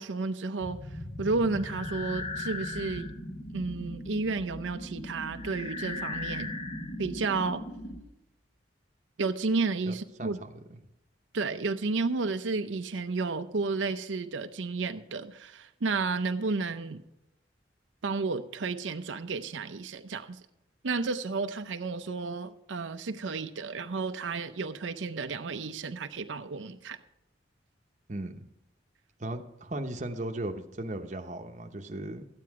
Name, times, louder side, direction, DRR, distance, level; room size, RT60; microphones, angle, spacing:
voice 1, 0.0-3.1 3.5-6.5 7.0-7.6 9.2-10.4 11.3-17.0 18.0-20.4 20.8-27.0, right 4 dB, 90° right, 0.6 m, -32 dB
sound 1, 0.6-8.0, left 2 dB, 35° left, 1.3 m, -38 dB
voice 2, 9.9-10.8 28.1-28.5 29.2-32.2, right 1 dB, 40° right, 0.9 m, -37 dB
13.0 x 9.4 x 4.8 m
head